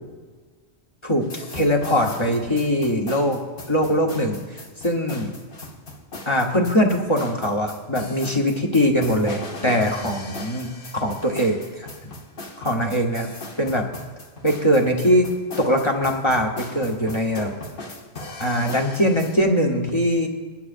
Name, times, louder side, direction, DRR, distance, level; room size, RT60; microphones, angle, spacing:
voice 1, 1.0-3.4 3.7-5.3 6.3-12.1 12.6-13.3 13.6-13.9 14.4-15.3 15.6-17.5 18.4-20.3, equal, 25° left, 1 dB, 1.2 m, -22 dB
sound 1, 1.2-19.4, left 2 dB, 50° left, 1.4 m, -38 dB
20.5 x 10.0 x 2.6 m, 1.5 s
omnidirectional pair, 1.1 m